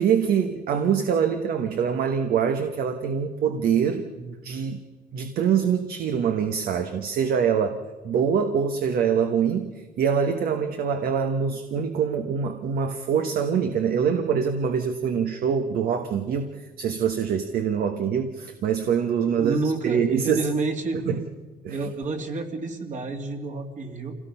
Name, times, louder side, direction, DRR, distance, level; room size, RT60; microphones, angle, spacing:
voice 1, 0.0-4.8 5.1-7.8 8.0-9.7 10.0-16.5 16.8-19.6 19.8-20.4 21.1-21.2 21.6-21.9, right 7 dB, 60° right, 7 dB, 1.3 m, -24 dB
voice 2, 19.4-21.0 21.7-24.2, right 3 dB, 45° right, 3 dB, 2.8 m, -29 dB
26.5 x 17.5 x 5.6 m, 1.4 s
cardioid pair, 110°, 17 cm